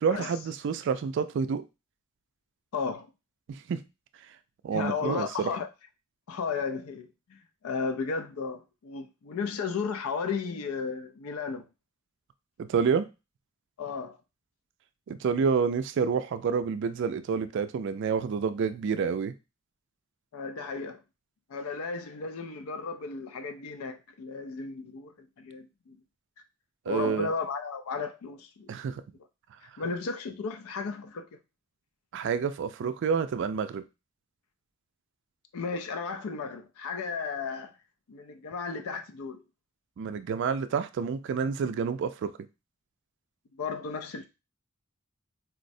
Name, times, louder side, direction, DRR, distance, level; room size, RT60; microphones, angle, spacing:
voice 1, 0.0-1.6 3.7-3.8 4.6-5.5 12.6-13.1 15.1-19.3 26.9-27.3 28.7-29.0 32.1-33.8 40.0-42.3, right 6 dB, 60° right, 0.3 m, -28 dB
voice 2, 2.7-3.1 4.7-5.7 6.3-11.7 13.8-14.2 20.3-21.0 21.5-26.0 26.9-28.7 29.8-31.3 35.5-37.7 38.1-39.4 43.6-44.3, left 5 dB, 90° left, 0.4 m, -34 dB
4.3 x 2.0 x 2.6 m
head